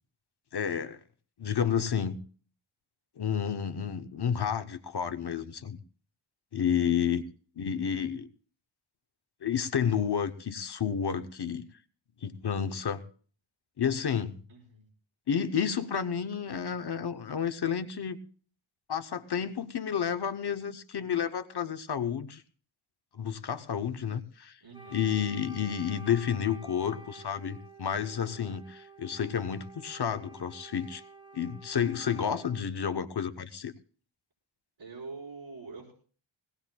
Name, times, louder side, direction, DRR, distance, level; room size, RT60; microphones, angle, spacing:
voice 1, 0.5-1.0 1.4-2.2 3.2-5.8 6.5-7.2 7.6-8.3 9.4-11.7 12.2-13.0 13.8-14.4 15.3-18.2 18.9-22.4 23.1-24.6 24.9-31.0 31.3-33.7, left 8 dB, 55° left, 10 dB, 0.8 m, -30 dB
voice 2, 6.6-6.9 14.5-14.9 24.6-25.0 34.8-35.9, right 4 dB, 65° right, -5 dB, 4.8 m, -45 dB
Wind instrument woodwind instrument, 24.7-32.7, right 2 dB, 10° right, 1.6 m, -50 dB
21.0 x 18.0 x 2.2 m, 0.43 s
wide cardioid pair, 80°, 48 cm